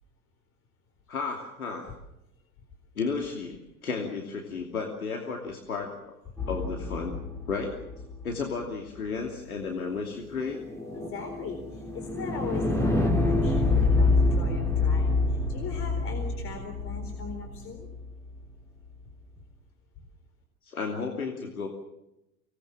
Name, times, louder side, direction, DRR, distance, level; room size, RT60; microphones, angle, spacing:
voice 1, 1.1-1.9 2.9-6.0 6.5-7.2 7.5-7.8 8.2-10.6 20.6-21.7, left 4 dB, 75° left, 2 dB, 2.9 m, -33 dB
sound 1, 6.4-8.5 10.4-18.4, left 3 dB, 5° left, 3.8 m, -27 dB
voice 2, 10.9-17.9, left 4 dB, 30° left, 4 dB, 4.1 m, -40 dB
25.0 x 19.5 x 7.5 m, 0.89 s
figure-of-eight pair, 85°, 44 cm